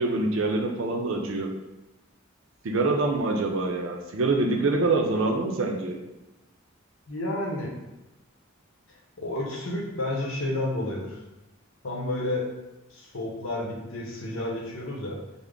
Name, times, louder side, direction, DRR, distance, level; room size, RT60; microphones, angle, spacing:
voice 1, 0.0-1.5 2.6-6.0, right 2 dB, 65° right, 3 dB, 0.5 m, -25 dB
voice 2, 7.1-7.7 9.2-11.2 11.8-12.4 12.9-15.2, left 1 dB, 70° left, -2 dB, 0.8 m, -30 dB
3.4 x 2.0 x 3.7 m, 1.0 s
head